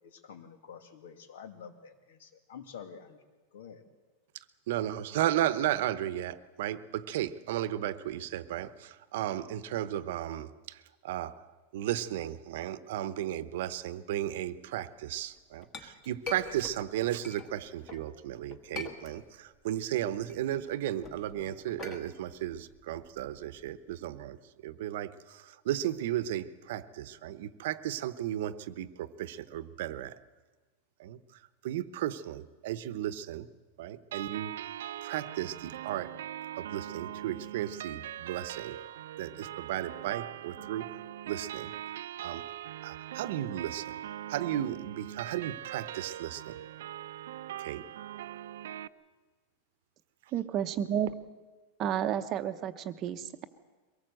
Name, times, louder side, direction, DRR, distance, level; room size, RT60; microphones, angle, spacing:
voice 1, 0.0-3.2 3.5-3.8, left 7 dB, 85° left, 7 dB, 2.5 m, -48 dB
voice 2, 4.7-11.4 11.7-24.4 24.6-30.2 31.0-31.2 31.6-33.5 33.8-34.5 35.0-36.1 36.6-38.8 39.2-40.8 41.2-41.7 42.2-42.4 42.8-44.0 44.3-46.6 47.6-47.8, right 12 dB, 55° right, 15 dB, 0.9 m, -34 dB
Chink clink, 15.2-18.1 18.5-19.6 19.9-24.0, left 4 dB, 20° left, 1.5 m, -45 dB
sound 1, 34.1-48.9, right 11 dB, 90° right, 0.7 m, -41 dB
voice 3, 50.3-51.1 51.8-53.4, right 9 dB, 25° right, 9 dB, 0.8 m, -31 dB
23.0 x 18.0 x 7.8 m, 1.3 s
supercardioid pair, 180°, 0 cm